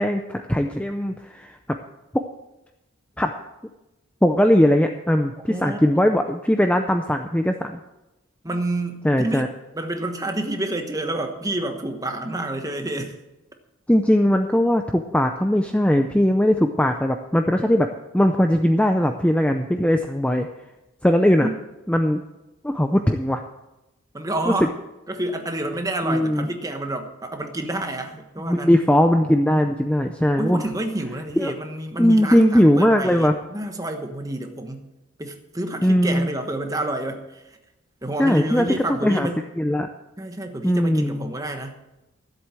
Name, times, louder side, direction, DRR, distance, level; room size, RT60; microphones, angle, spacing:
voice 1, 0.0-1.6 3.2-3.3 4.2-7.8 9.0-9.5 13.9-17.9 18.1-20.5 21.0-21.5 21.9-22.2 22.6-23.4 24.5-24.6 26.0-26.5 28.5-30.6 31.4-31.5 32.0-33.3 35.8-36.3 38.2-38.7 39.0-39.3 39.6-39.9 40.6-41.3, equal, 5° left, 5 dB, 0.5 m, -19 dB
voice 2, 5.4-6.0 8.4-13.2 21.4-21.6 24.1-24.7 25.1-28.7 29.6-29.7 30.4-34.9 35.2-37.6 38.0-39.4 40.2-41.8, right 1 dB, 15° right, 5 dB, 1.2 m, -29 dB
13.5 x 8.0 x 7.6 m, 0.98 s
head